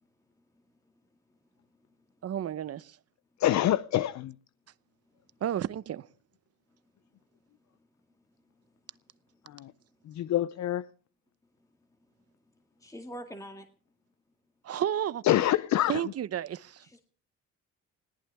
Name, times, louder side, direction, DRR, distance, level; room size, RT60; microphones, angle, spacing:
voice 1, 2.2-3.0 5.4-6.0 14.6-15.2 15.9-16.8, right 10 dB, 55° right, 0.8 m, -32 dB
voice 2, 3.4-4.3 9.5-9.7 10.1-10.9 15.2-16.0, left 13 dB, 65° left, 0.6 m, -26 dB
voice 3, 12.8-13.7 16.8-17.0, equal, 10° left, 2.1 m, -43 dB
20.5 x 18.0 x 3.5 m
cardioid pair, 90°, 30 cm